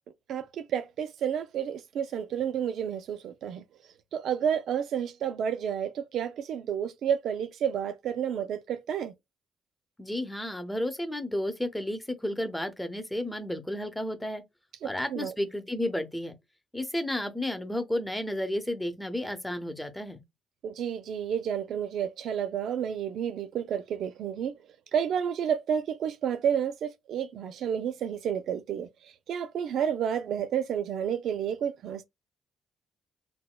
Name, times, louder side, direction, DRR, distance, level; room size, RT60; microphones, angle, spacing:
voice 1, 0.3-3.6 4.1-9.1 14.8-15.3 20.6-24.5 24.9-28.9 29.3-32.0, right 8 dB, 75° right, 0.4 m, -30 dB
voice 2, 10.0-14.4 14.8-16.3 16.7-20.2, left 1 dB, 10° left, 0.9 m, -32 dB
4.0 x 2.2 x 2.2 m
cardioid pair, 90°, 0 cm